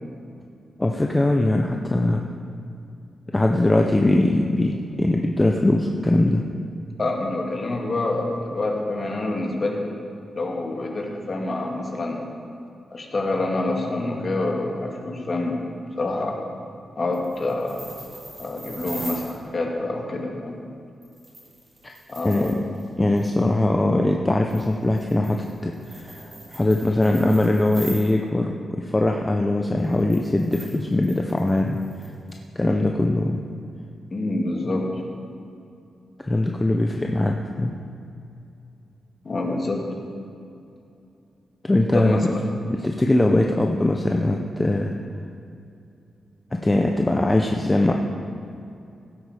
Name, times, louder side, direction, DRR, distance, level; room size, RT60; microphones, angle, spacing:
voice 1, 0.8-2.2 3.3-6.5 21.8-21.9 22.2-22.6 23.0-26.2 26.5-31.8 32.6-33.4 36.2-37.8 41.6-42.3 42.7-45.0 46.5-47.9, left 1 dB, 15° left, 2 dB, 0.6 m, -21 dB
voice 2, 7.0-9.8 10.3-12.3 12.9-15.5 16.0-16.3 17.0-17.9 18.4-20.6 22.1-22.5 34.1-35.0 39.2-39.8 41.9-42.4, left 2 dB, 35° left, 0 dB, 1.8 m, -26 dB
sound 1, 17.1-19.4 21.0-22.9 23.2-23.3 24.5-28.1 29.8-32.4, right 2 dB, 30° right, 3.2 m, -41 dB
15.5 x 8.2 x 4.9 m, 2.6 s
wide cardioid pair, 125°, 0 cm